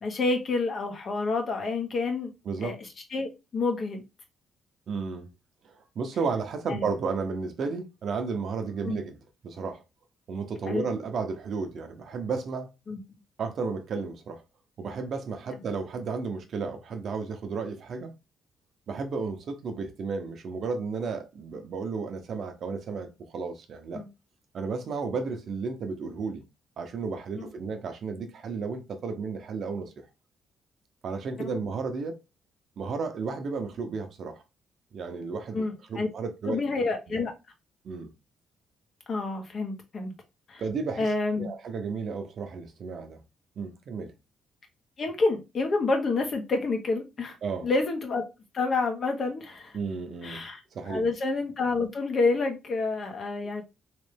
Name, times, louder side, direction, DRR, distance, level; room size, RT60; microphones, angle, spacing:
voice 1, 0.0-2.3 2.6-2.7 3.1-4.0 6.7-6.8 8.8-9.0 10.7-10.8 12.9-13.0 23.9-24.1 27.4-27.5 35.5-36.1 36.4-37.3 39.1-40.1 40.5-40.6 41.0-41.5 45.0-47.4 47.6-48.2 48.5-49.8 50.2-50.6 50.8-53.6, left 3 dB, 45° left, 1.3 m, -28 dB
voice 2, 4.9-5.3 5.6-9.2 9.4-9.8 10.3-12.7 13.4-14.4 14.8-18.1 18.9-24.0 24.5-26.4 26.8-30.1 31.0-32.2 32.8-34.4 34.9-35.6 35.9-36.6 37.8-38.1 40.6-43.2 43.6-44.1 47.4-47.7 49.7-50.4 50.7-51.0, right 4 dB, 60° right, 0.9 m, -33 dB
3.4 x 3.2 x 3.4 m
cardioid pair, 90°, 0 cm